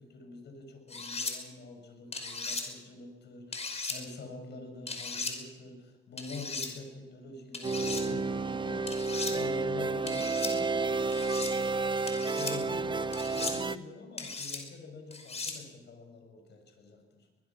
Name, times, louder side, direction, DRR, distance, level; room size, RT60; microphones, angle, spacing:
voice 1, 0.0-11.6 12.4-17.3, left 3 dB, 60° left, 4 dB, 7.0 m, -46 dB
sound 1, 0.9-1.3 2.1-2.6 3.5-4.0 4.9-5.3 6.2-6.7 7.5-8.0 8.9-9.3 10.1-10.5 11.1-11.5 12.1-12.5 13.1-13.6 14.2-14.6 15.1-15.6, left 4 dB, 30° left, 5.2 m, -37 dB
sound 2, 7.6-13.8, right 3 dB, 25° right, 0.9 m, -31 dB
22.0 x 21.5 x 6.1 m, 1.1 s
cardioid pair, 95°, 20 cm